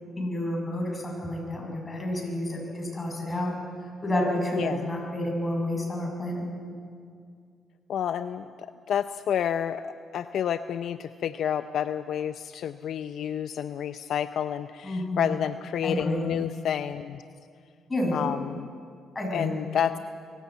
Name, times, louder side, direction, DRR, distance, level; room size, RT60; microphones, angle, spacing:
voice 1, 0.2-3.5 4.0-6.5 14.8-15.3 15.8-16.3 17.9-18.1 19.2-19.5, left 1 dB, 25° left, -1 dB, 7.0 m, -29 dB
voice 2, 4.5-4.9 7.9-17.2 18.1-18.7 19.3-20.0, left 9 dB, 70° left, 11 dB, 0.5 m, -30 dB
24.5 x 14.0 x 8.4 m, 2.2 s
cardioid pair, 90°, 0 cm